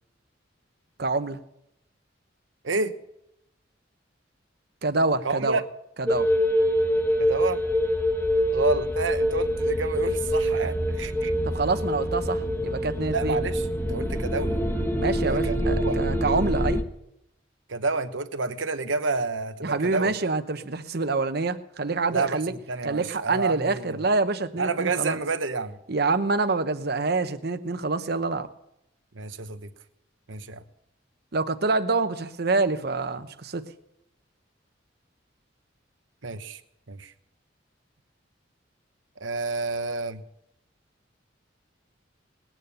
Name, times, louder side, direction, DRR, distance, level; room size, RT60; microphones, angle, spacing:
voice 1, 1.0-1.4 4.8-5.6 6.0-6.3 11.4-13.4 15.0-16.8 19.6-22.5 22.8-25.2 25.9-28.5 31.3-33.6, right 3 dB, 55° right, 10 dB, 0.9 m, -26 dB
voice 2, 5.2-5.6 7.2-7.6 8.5-11.3 13.1-14.6 15.3-16.0 17.7-20.1 22.1-24.0 24.6-25.8 29.1-29.7 30.3-30.6 36.2-36.6 36.9-37.1 39.2-40.2, right 3 dB, 90° right, 9 dB, 1.1 m, -29 dB
sound 1, 6.1-16.8, equal, 10° left, 1.0 m, -25 dB
19.5 x 9.2 x 6.8 m, 0.81 s
head